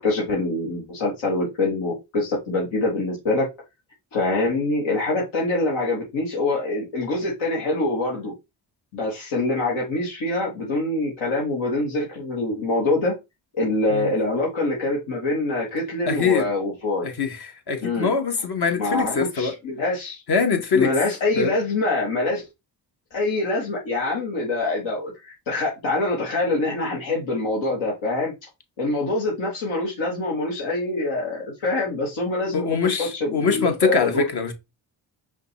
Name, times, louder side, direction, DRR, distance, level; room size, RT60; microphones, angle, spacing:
voice 1, 0.0-3.5 4.1-8.3 8.9-13.1 13.5-17.1 17.8-18.1 18.8-20.2 20.7-22.5 23.1-28.3 28.8-34.2, left 2 dB, 80° left, 1.6 m, -25 dB
voice 2, 16.1-16.5 17.0-19.5 20.3-20.9 21.4-21.6 32.5-34.5, left 5 dB, 55° left, 1.2 m, -23 dB
5.0 x 2.3 x 4.1 m
supercardioid pair, 50°, 46 cm